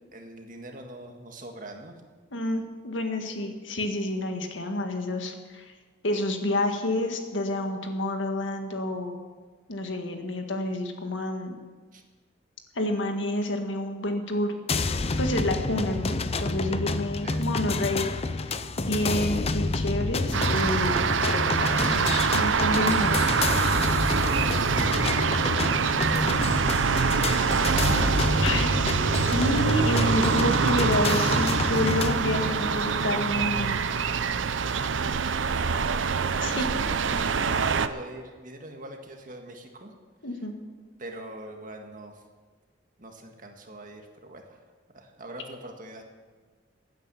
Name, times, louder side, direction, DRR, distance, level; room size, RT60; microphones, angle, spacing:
voice 1, 0.1-2.0 11.9-12.0 17.2-17.5 24.0-28.8 35.1-35.7 36.3-39.9 41.0-42.2 43.0-44.6 44.9-46.0, right 1 dB, 45° right, 3 dB, 1.8 m, -43 dB
voice 2, 2.3-5.7 6.0-9.2 9.7-11.6 12.8-23.3 28.4-28.9 29.3-33.7 36.4-36.7 40.2-40.5, left 1 dB, 90° left, 5 dB, 1.8 m, -29 dB
sound 1, 14.7-32.1, left 3 dB, 35° left, 0.6 m, -28 dB
sound 2, 20.3-37.9, right 5 dB, 90° right, 0.6 m, -25 dB
16.0 x 9.3 x 7.0 m, 1.5 s
head